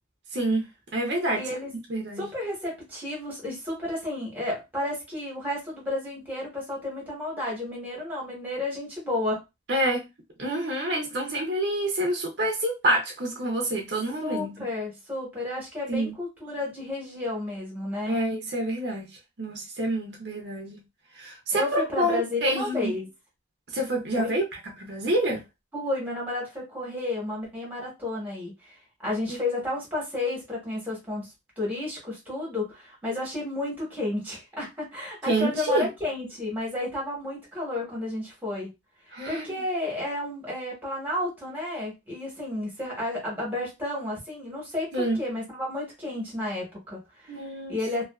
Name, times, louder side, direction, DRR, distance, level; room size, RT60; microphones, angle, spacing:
voice 1, 0.3-0.7 0.9-1.4 1.9-2.2 9.7-10.1 10.4-14.5 15.9-16.1 18.1-19.1 19.4-20.8 21.2-22.9 23.7-24.4 24.8-25.4 35.3-35.9 39.1-39.6 44.9-45.2 47.3-47.7, right 1 dB, 55° right, 0.6 m, -27 dB
voice 2, 1.3-1.7 2.2-9.4 14.2-18.2 21.5-23.1 24.1-24.3 25.7-28.8 29.0-38.7 39.3-47.4 47.7-48.1, left 2 dB, 10° right, 1.1 m, -32 dB
2.4 x 2.3 x 2.3 m
head